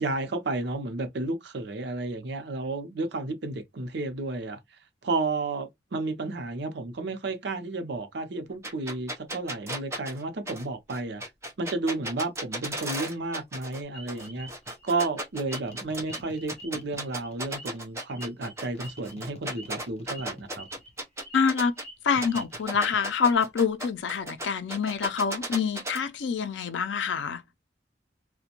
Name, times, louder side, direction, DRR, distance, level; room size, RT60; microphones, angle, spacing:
voice 1, 0.0-4.6 5.0-11.2 11.6-14.5 14.8-20.7, right 2 dB, 65° right, 0.6 m, -32 dB
sound 1, 8.6-13.8 14.1-16.2 16.5-21.8 22.2-26.0, right 1 dB, 15° right, 0.7 m, -35 dB
sound 2, 13.9-15.8 16.1-19.1 19.5-19.7 20.1-20.3 20.6-20.9 21.2-22.0 22.2-23.3, right 1 dB, 5° left, 1.3 m, -47 dB
sound 3, 14.2-14.8 15.7-17.8 18.8-21.0 22.2-23.1, left 1 dB, 35° left, 0.7 m, -49 dB
voice 2, 21.3-21.7 22.0-27.4, left 6 dB, 85° left, 0.4 m, -26 dB
2.4 x 2.1 x 2.9 m
head